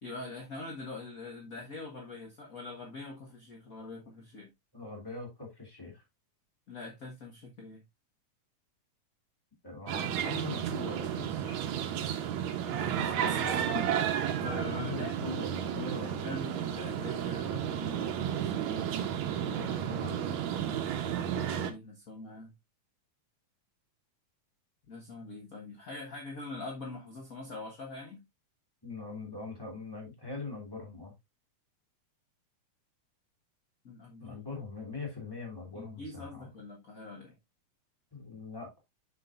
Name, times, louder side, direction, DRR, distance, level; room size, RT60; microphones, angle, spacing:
voice 1, 0.0-4.5 6.7-7.8 12.7-15.1 15.7-18.8 21.7-22.5 24.9-28.2 33.8-34.4 35.7-37.4, left 3 dB, 40° left, 1.2 m, -43 dB
voice 2, 4.7-6.0 9.6-11.6 12.2-12.5 14.7-16.4 19.4-20.4 28.8-31.1 34.2-36.5 38.1-38.7, left 3 dB, 10° left, 2.5 m, -42 dB
sound 1, 9.9-21.7, right 9 dB, 70° right, 2.2 m, -32 dB
7.3 x 7.0 x 2.5 m
omnidirectional pair, 3.5 m